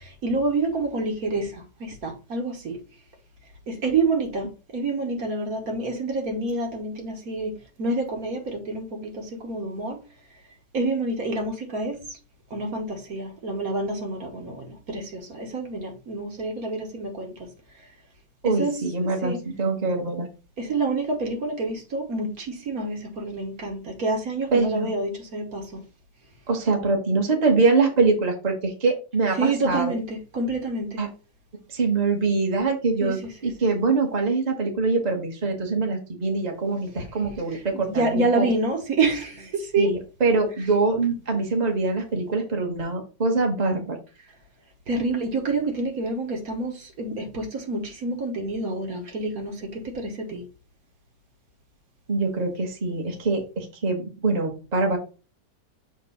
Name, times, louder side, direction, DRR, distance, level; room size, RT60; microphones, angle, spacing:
voice 1, 0.2-1.5 1.8-2.8 3.7-4.5 4.7-7.5 7.8-10.0 10.7-12.0 12.5-17.3 18.4-19.4 20.6-25.6 29.4-31.0 33.0-33.3 37.7-39.9 44.9-50.4, right 2 dB, 60° right, 1.7 m, -27 dB
voice 2, 18.4-20.3 24.5-24.9 26.5-29.9 31.0-31.1 31.7-38.5 39.8-44.0 52.1-55.0, right 3 dB, 25° right, 1.3 m, -24 dB
7.3 x 2.5 x 5.5 m
omnidirectional pair, 1.8 m